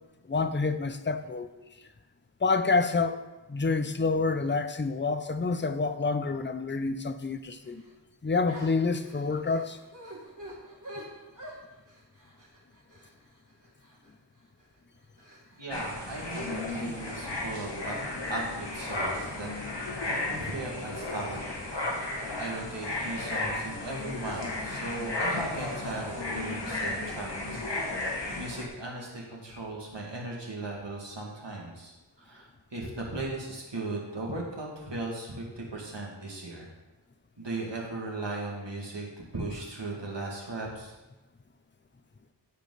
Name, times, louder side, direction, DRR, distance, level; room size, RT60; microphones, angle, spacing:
voice 1, 0.3-1.5 2.4-3.2 3.5-7.8 8.2-9.8, left 4 dB, 25° left, 0.6 m, -28 dB
sound 1, 7.6-7.9 8.5-14.1 14.6-14.8 15.2-16.0, equal, 45° right, 2.7 m, -47 dB
voice 2, 15.6-18.0 18.3-19.5 20.0-28.0 28.4-36.7 37.4-40.9, right 2 dB, 80° right, 2.4 m, -38 dB
sound 2, 15.7-28.7, left 2 dB, 75° left, 1.7 m, -34 dB
15.0 x 5.2 x 4.1 m
wide cardioid pair, 45°, 43 cm